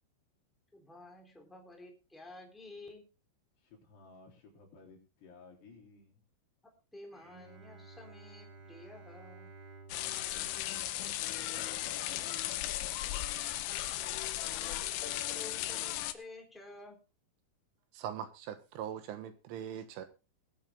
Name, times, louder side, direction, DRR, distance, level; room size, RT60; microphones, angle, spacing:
voice 1, 0.7-3.1 6.9-9.6 14.4-17.0, left 2 dB, ahead, 2.4 m, -51 dB
voice 2, 3.6-6.3 10.0-13.4, left 3 dB, 60° left, 5.4 m, -57 dB
Bowed string instrument, 7.1-12.4, right 3 dB, 35° right, 4.8 m, -55 dB
sound 1, 9.9-16.1, left 14 dB, 75° left, 2.9 m, -36 dB
voice 3, 17.9-20.1, right 9 dB, 80° right, 3.7 m, -41 dB
21.0 x 8.6 x 3.7 m
omnidirectional pair, 5.7 m